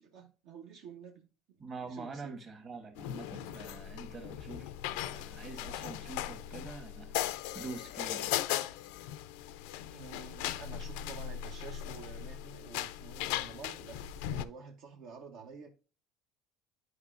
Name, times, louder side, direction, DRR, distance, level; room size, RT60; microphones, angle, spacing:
voice 1, 0.0-1.6 1.9-2.3 9.9-15.7, right 5 dB, 70° right, 0.8 m, -49 dB
voice 2, 1.6-8.4, right 4 dB, 35° right, 1.4 m, -45 dB
sound 1, 3.0-14.4, left 12 dB, 85° left, 0.4 m, -38 dB
9.5 x 4.9 x 2.4 m
cardioid pair, 125°, 0 cm